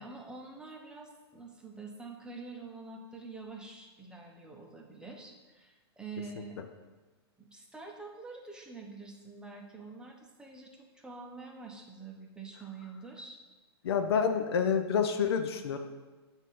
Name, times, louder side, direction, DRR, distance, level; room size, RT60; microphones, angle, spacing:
voice 1, 0.0-6.6 7.4-13.4, right 4 dB, 5° right, 0 dB, 0.8 m, -46 dB
voice 2, 13.8-15.8, left 6 dB, 65° left, 7 dB, 0.6 m, -28 dB
7.2 x 2.7 x 5.6 m, 1.2 s
hypercardioid pair, 110°, 14 cm